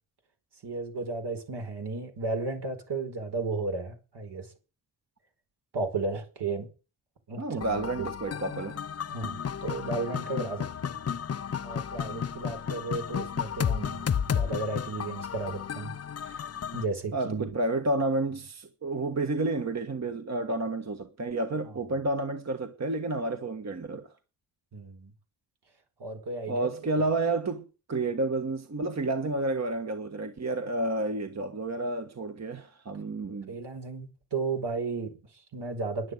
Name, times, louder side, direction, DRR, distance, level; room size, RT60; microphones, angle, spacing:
voice 1, 0.6-4.5 5.7-6.7 7.3-7.7 8.0-8.4 9.1-11.0 11.6-16.0 16.2-17.5 21.7-21.8 24.7-25.1 26.0-26.7 33.5-36.1, right 3 dB, 70° right, 4.9 m, -34 dB
voice 2, 7.4-8.9 17.1-24.1 26.5-33.6, right 2 dB, 40° right, 1.6 m, -30 dB
sound 1, 7.6-16.8, left 7 dB, 35° left, 0.6 m, -33 dB
11.0 x 9.4 x 9.3 m
wide cardioid pair, 115°, 42 cm